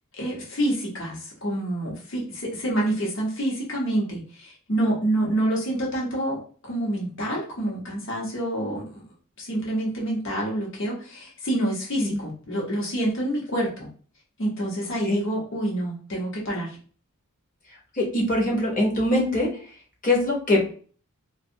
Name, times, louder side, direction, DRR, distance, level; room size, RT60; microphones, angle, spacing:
voice 1, 0.2-9.0 9.4-13.9 14.4-16.8, right 1 dB, 60° left, -3 dB, 1.0 m, -27 dB
voice 2, 17.9-19.5 20.0-20.7, left 1 dB, 40° left, -1 dB, 0.9 m, -22 dB
2.5 x 2.4 x 2.7 m, 0.42 s
head